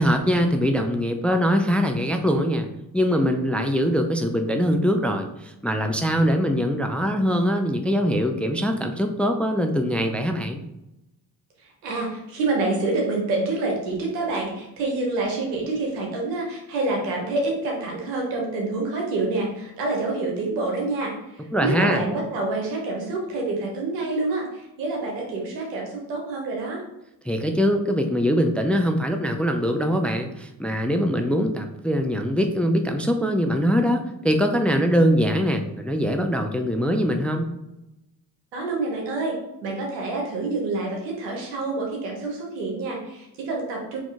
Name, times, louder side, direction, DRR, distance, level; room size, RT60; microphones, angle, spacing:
voice 1, 0.0-2.7 2.9-10.6 21.5-22.0 27.3-37.5, equal, 5° left, 5 dB, 0.4 m, -22 dB
voice 2, 11.8-26.8 38.5-39.4 39.6-44.0, right 2 dB, 90° right, -1 dB, 1.2 m, -27 dB
4.1 x 3.0 x 3.7 m, 0.89 s
hypercardioid pair, 50°, 49 cm